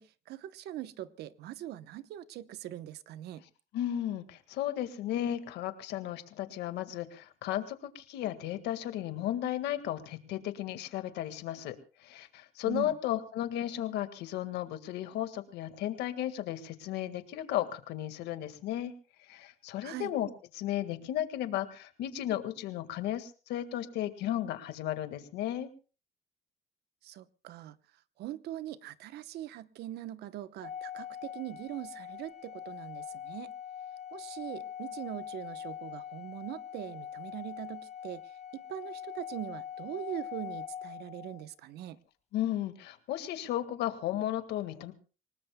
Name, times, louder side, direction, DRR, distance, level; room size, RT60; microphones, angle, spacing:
voice 1, 0.0-3.4 12.6-13.0 19.8-20.1 27.0-27.8 28.2-33.5 34.1-42.0, right 13 dB, 75° right, 14 dB, 0.9 m, -42 dB
voice 2, 3.7-18.9 19.2-20.3 20.5-25.7 42.3-44.9, left 12 dB, 85° left, 9 dB, 1.8 m, -34 dB
Organ, 30.6-41.5, left 9 dB, 40° left, 1.1 m, -43 dB
27.5 x 19.0 x 2.2 m, 0.36 s
cardioid pair, 110°, 17 cm